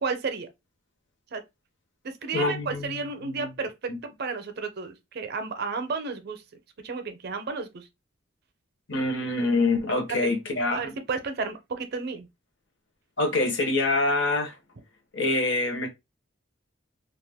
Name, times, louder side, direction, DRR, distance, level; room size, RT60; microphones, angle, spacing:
voice 1, 0.0-0.5 1.3-1.4 2.2-3.7 4.0-6.4 6.8-7.9 10.1-10.3 10.7-12.3, right 4 dB, 50° right, 0.5 m, -32 dB
voice 2, 2.3-3.5 3.9-4.0 8.9-10.8 13.2-14.5 15.1-15.9, left 2 dB, 60° left, 0.8 m, -25 dB
2.3 x 2.1 x 3.4 m
head